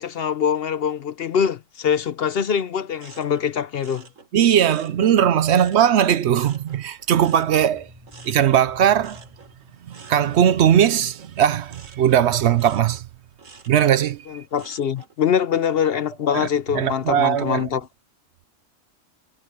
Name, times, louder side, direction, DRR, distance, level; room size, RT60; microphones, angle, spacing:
voice 1, 0.0-4.0 14.3-17.9, left 8 dB, 60° left, 0.8 m, -23 dB
sound 1, 3.0-6.0 6.3-15.2 15.6-16.0, right 4 dB, 90° right, 2.5 m, -48 dB
voice 2, 4.3-7.9 8.2-9.2 9.9-13.0 13.7-14.3 16.3-16.5 16.7-17.7, right 9 dB, 65° right, 0.8 m, -19 dB
sound 2, 6.6-10.2, equal, 20° right, 3.5 m, -48 dB
omnidirectional pair, 1.3 m